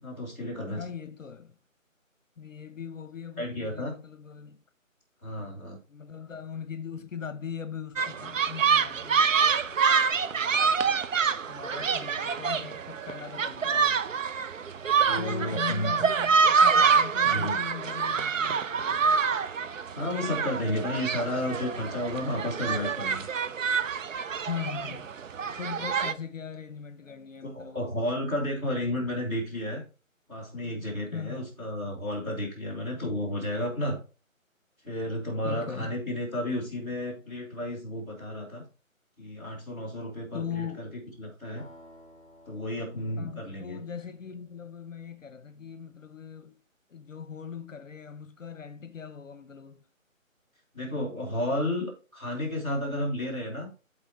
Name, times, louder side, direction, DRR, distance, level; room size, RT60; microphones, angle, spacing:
voice 1, 0.0-0.8 3.4-3.9 5.2-5.8 15.0-15.9 17.2-17.6 19.9-23.3 27.4-29.8 30.3-34.0 34.8-38.6 39.2-40.9 41.2-41.6 42.5-43.8 50.7-53.7, left 1 dB, 10° right, 1.9 m, -32 dB
voice 2, 0.8-1.5 2.4-4.6 5.9-11.0 11.5-14.0 15.2-19.2 24.5-25.1 25.6-28.0 31.1-31.5 35.4-36.0 40.3-40.8 43.2-46.6 46.9-49.8, left 7 dB, 65° left, 0.8 m, -40 dB
sound 1, 8.0-26.1, right 6 dB, 65° right, 0.6 m, -26 dB
sound 2, 41.6-45.3, equal, 25° left, 2.8 m, -56 dB
12.5 x 4.2 x 2.9 m
figure-of-eight pair, 170°, 41 cm